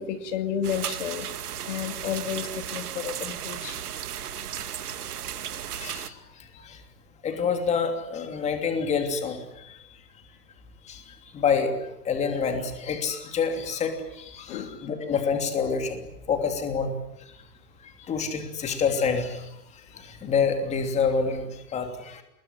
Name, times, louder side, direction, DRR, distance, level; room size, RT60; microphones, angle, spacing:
voice 1, 0.0-1.3 1.7-3.8 14.5-15.0, left 8 dB, 45° left, 8 dB, 2.5 m, -32 dB
sound 1, 0.6-6.1, right 10 dB, 65° right, 2.4 m, -35 dB
voice 2, 5.8-6.1 6.6-6.8 7.2-9.8 10.9-11.0 11.3-11.7 12.0-16.9 17.8-19.5 19.9-22.2, left 5 dB, 15° left, 6 dB, 3.0 m, -27 dB
28.0 x 21.0 x 10.0 m, 0.81 s
hypercardioid pair, 150°, 49 cm